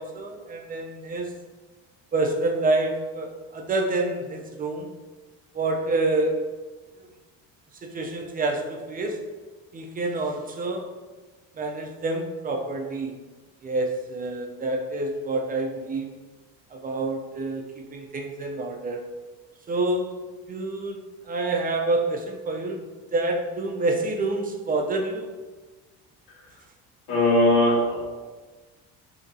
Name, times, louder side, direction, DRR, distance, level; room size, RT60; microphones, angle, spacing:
voice 1, 0.0-1.3 2.1-4.9 5.5-6.5 7.0-7.1 7.8-9.2 9.7-10.9 11.6-13.1 13.6-16.1 16.7-19.1 19.7-20.2 20.5-22.9 23.1-25.3, right 2 dB, 25° right, 2 dB, 0.4 m, -27 dB
voice 2, 27.1-28.1, left 1 dB, 85° left, -4 dB, 1.3 m, -20 dB
3.7 x 2.8 x 2.6 m, 1.3 s
supercardioid pair, 100°, 33 cm